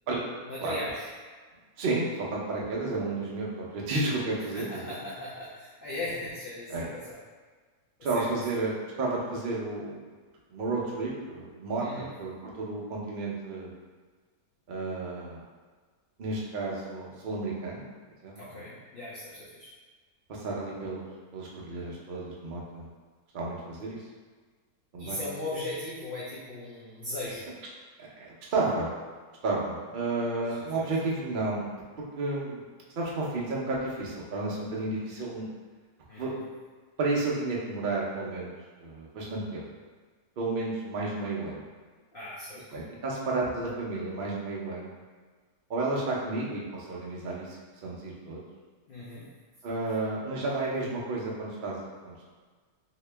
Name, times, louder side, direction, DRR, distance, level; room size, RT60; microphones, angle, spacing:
voice 1, 0.4-1.1 4.5-7.2 8.1-8.3 11.8-12.1 18.4-19.7 25.0-27.5 30.4-30.6 36.1-36.4 42.1-42.6 48.9-49.3, left 1 dB, 60° left, -8 dB, 0.5 m, -38 dB
voice 2, 1.8-4.9 6.7-6.9 8.0-8.7 9.0-10.0 10.5-13.7 14.7-15.4 16.2-17.8 18.2-18.6 20.3-21.0 21.3-22.9 23.3-24.0 24.9-25.2 28.0-28.9 29.4-31.6 32.2-32.6 33.0-35.5 36.2-36.3 37.0-38.5 38.8-39.7 40.4-41.7 42.7-44.9 45.7-47.6 47.8-48.4 49.6-51.8 52.0-52.3, right 3 dB, 55° right, -4 dB, 0.5 m, -32 dB
2.8 x 2.8 x 3.3 m, 1.4 s
omnidirectional pair, 1.7 m